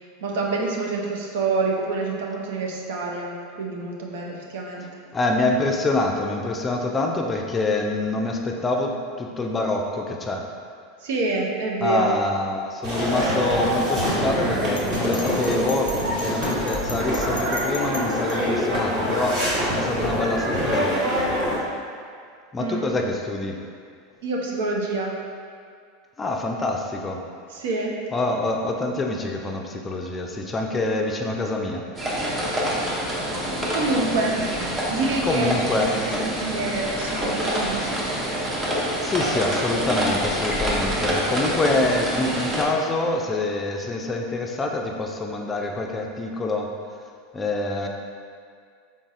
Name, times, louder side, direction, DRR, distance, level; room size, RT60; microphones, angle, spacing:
voice 1, 0.2-4.9 11.0-12.1 22.6-22.9 24.2-25.1 27.5-27.9 33.7-35.6 35.9-38.0, right 3 dB, 75° right, -1 dB, 0.6 m, -27 dB
voice 2, 5.1-10.5 11.8-21.1 22.5-23.6 26.2-27.2 28.1-31.9 35.2-36.0 39.0-46.7 47.3-47.9, left 2 dB, 20° left, 1 dB, 0.4 m, -26 dB
sound 1, 12.8-21.6, equal, 55° right, 1.4 m, -25 dB
Bell, 14.8-18.4, left 5 dB, 90° left, 0.3 m, -37 dB
sound 2, 32.0-42.6, equal, 25° right, 0.8 m, -26 dB
3.9 x 3.7 x 2.4 m, 2.2 s
hypercardioid pair, 95°, 0 cm